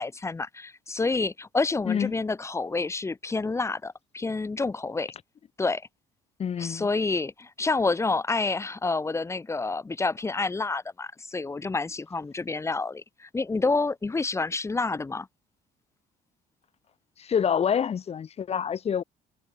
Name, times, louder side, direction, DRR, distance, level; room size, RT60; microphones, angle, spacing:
voice 1, 0.0-5.1 5.6-5.8 6.6-15.3, left 3 dB, 15° left, 0.7 m, -28 dB
voice 2, 6.4-6.9 17.2-19.0, left 7 dB, 40° left, 1.1 m, -27 dB
cardioid pair, 110°, 17 cm